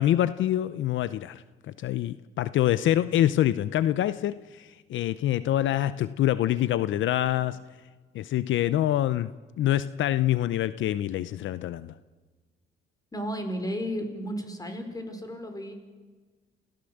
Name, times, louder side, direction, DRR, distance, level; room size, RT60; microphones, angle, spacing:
voice 1, 0.0-7.6 8.1-9.3 9.6-11.9, left 12 dB, 75° left, 15 dB, 0.7 m, -26 dB
voice 2, 13.1-15.7, equal, 20° left, 6 dB, 4.9 m, -33 dB
28.5 x 16.5 x 7.9 m, 1.4 s
cardioid pair, 90°, 20 cm